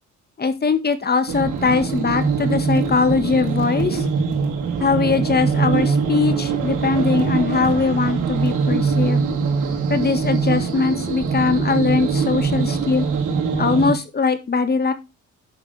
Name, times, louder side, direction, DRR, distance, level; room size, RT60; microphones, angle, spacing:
voice 1, 0.4-4.1 4.8-9.2 9.9-13.1 13.6-14.9, left 4 dB, 30° left, 10 dB, 1.9 m, -21 dB
sound 1, 1.3-13.9, right 5 dB, 90° right, 3.9 m, -22 dB
11.0 x 7.2 x 3.4 m, 0.25 s
cardioid pair, 90°, 30 cm